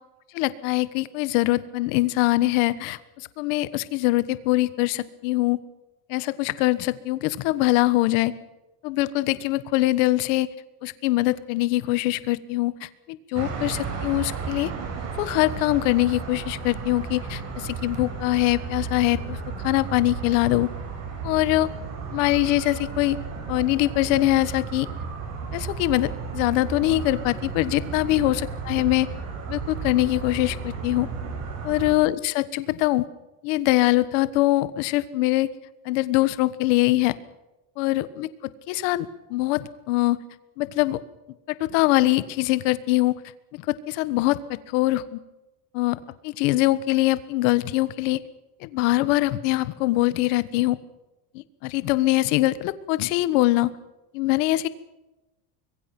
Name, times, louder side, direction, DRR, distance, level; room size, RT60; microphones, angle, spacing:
voice 1, 0.3-3.0 3.4-5.6 6.1-8.3 8.8-10.5 10.8-14.7 15.1-20.7 21.2-21.7 22.1-23.2 23.5-24.9 25.5-29.1 29.5-31.1 31.6-33.0 33.4-35.5 35.8-37.1 37.8-38.3 38.7-40.2 40.6-41.0 41.6-43.2 43.5-44.4 44.7-45.2 45.7-48.2 48.6-50.8 51.6-53.7 54.1-54.7, left 17 dB, 55° left, 15 dB, 1.5 m, -23 dB
sound 1, 13.4-32.0, right 5 dB, 35° right, 5.5 m, -33 dB
25.5 x 22.0 x 6.1 m, 1.0 s
cardioid pair, 175°, 44 cm